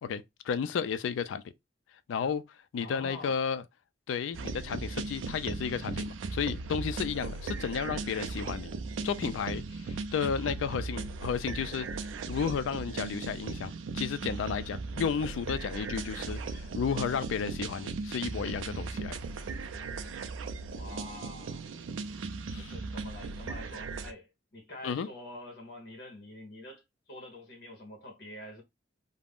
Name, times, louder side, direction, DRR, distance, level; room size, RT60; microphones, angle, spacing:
voice 1, 0.0-1.4 2.1-2.4 2.7-3.6 4.1-8.7 9.0-19.2 22.5-22.7 24.8-25.1, left 6 dB, 85° left, 0.3 m, -33 dB
voice 2, 2.8-3.4 20.7-21.6 22.6-28.6, left 1 dB, 55° left, 0.8 m, -46 dB
sound 1, 4.3-24.1, right 4 dB, 85° right, 0.4 m, -37 dB
2.4 x 2.0 x 3.4 m
head